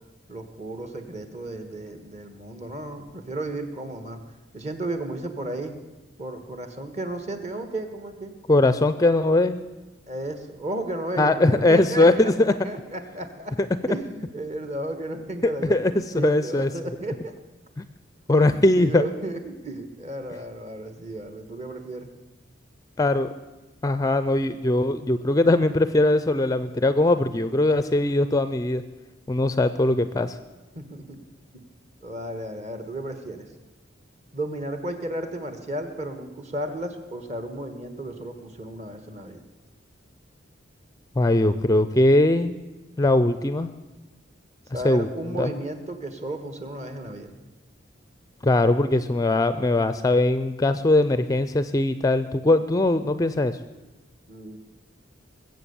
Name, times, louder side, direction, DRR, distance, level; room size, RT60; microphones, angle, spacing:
voice 1, 0.3-4.2 4.5-5.7 6.2-8.3 10.1-13.5 13.9-17.3 18.3-22.1 30.7-31.2 32.0-33.5 34.3-39.4 44.7-47.3 54.3-54.6, right 1 dB, 35° right, 8 dB, 1.4 m, -34 dB
voice 2, 8.5-9.6 11.2-12.5 15.7-16.7 17.8-17.9 18.3-19.0 23.0-23.3 23.8-28.8 29.3-30.4 41.2-42.6 43.0-43.7 44.8-45.1 45.4-45.5 48.4-53.6, left 2 dB, 20° left, 12 dB, 0.4 m, -20 dB
21.0 x 7.9 x 7.0 m, 1.2 s
head